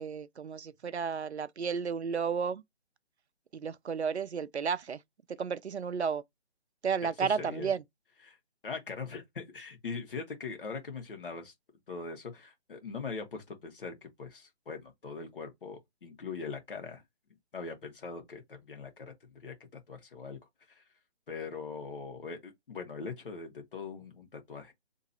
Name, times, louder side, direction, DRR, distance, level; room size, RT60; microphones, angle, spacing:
voice 1, 0.0-2.6 3.5-5.0 5.3-6.2 6.8-7.8, right 6 dB, 85° right, 0.6 m, -32 dB
voice 2, 7.4-7.8 8.2-8.4 8.6-11.5 11.9-17.0 17.5-19.1 19.4-19.5 19.9-20.4 20.7-20.8 21.3-24.7, left 4 dB, 55° left, 1.4 m, -41 dB
3.0 x 2.8 x 4.3 m
figure-of-eight pair, 145°, 32 cm